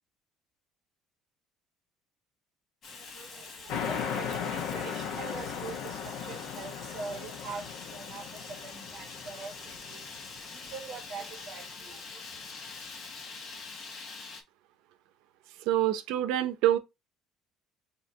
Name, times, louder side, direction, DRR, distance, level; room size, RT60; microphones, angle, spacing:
Fire, 2.8-14.4, left 4 dB, 40° left, 1.2 m, -45 dB
voice 1, 2.9-12.5, right 4 dB, 40° right, 1.6 m, -44 dB
sound 1, 3.7-10.9, left 7 dB, 85° left, 1.1 m, -37 dB
voice 2, 15.7-16.8, right 12 dB, 90° right, 0.6 m, -26 dB
5.7 x 2.9 x 2.8 m
cardioid pair, 160°, 0 cm